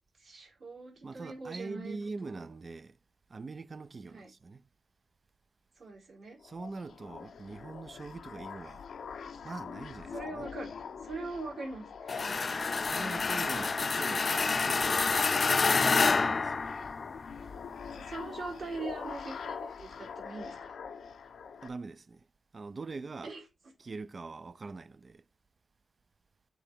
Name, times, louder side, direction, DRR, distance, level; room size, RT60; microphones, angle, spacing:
voice 1, 0.2-2.6 4.0-4.3 5.8-6.4 10.1-10.7 11.0-12.3 12.6-12.9 17.9-20.6 23.2-23.7, right 3 dB, 70° right, 4.0 m, -42 dB
voice 2, 1.0-2.9 3.3-4.6 6.4-8.8 9.4-10.1 12.9-15.2 15.7-16.5 21.6-22.2 22.5-23.3 23.8-25.1, right 3 dB, 45° right, 0.4 m, -43 dB
sound 1, 6.4-21.7, left 6 dB, 80° left, 0.7 m, -44 dB
sound 2, 12.1-17.3, left 4 dB, 45° left, 0.3 m, -28 dB
7.0 x 4.3 x 4.5 m
cardioid pair, 85°, 0 cm